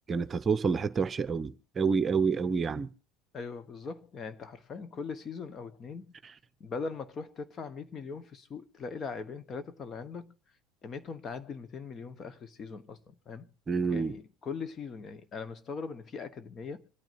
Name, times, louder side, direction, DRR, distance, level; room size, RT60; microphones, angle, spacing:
voice 1, 0.1-2.9 13.7-14.1, right 5 dB, 30° right, 0.8 m, -28 dB
voice 2, 3.3-6.1 6.6-10.3 10.8-13.5 13.9-16.9, left 5 dB, 40° left, 1.2 m, -40 dB
26.5 x 9.2 x 2.6 m
hypercardioid pair, 85°, 0 cm